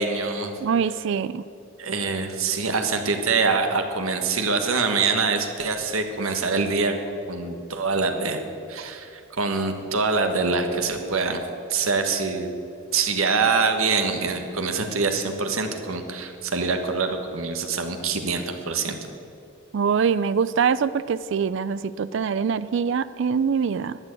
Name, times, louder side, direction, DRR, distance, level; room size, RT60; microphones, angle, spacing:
voice 1, 0.0-0.5 1.8-6.9 7.3-8.4 8.7-11.4 11.7-12.5 12.9-19.0, right 4 dB, 85° right, 6 dB, 1.5 m, -24 dB
voice 2, 0.6-1.4 19.7-24.0, right 6 dB, 60° right, 15 dB, 0.4 m, -24 dB
12.5 x 9.2 x 8.3 m, 2.7 s
head